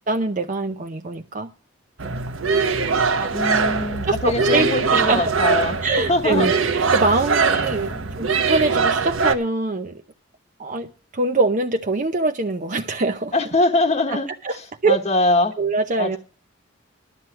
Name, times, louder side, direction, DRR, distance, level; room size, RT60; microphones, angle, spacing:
voice 1, 0.1-1.5 2.0-2.2 3.2-3.3 4.1-5.3 5.8-7.9 8.2-9.9 10.6-13.3 14.1-14.2 14.4-14.6 14.8-15.0 15.6-16.2, right 3 dB, 40° right, 5 dB, 0.7 m, -23 dB
sound 1, 2.0-9.3, right 4 dB, 90° right, 1.2 m, -22 dB
voice 2, 3.3-5.8 6.1-6.5 7.8-8.3 13.3-15.5 16.0-16.2, left 2 dB, 35° left, 1 dB, 1.1 m, -23 dB
12.0 x 7.7 x 5.8 m, 0.39 s
head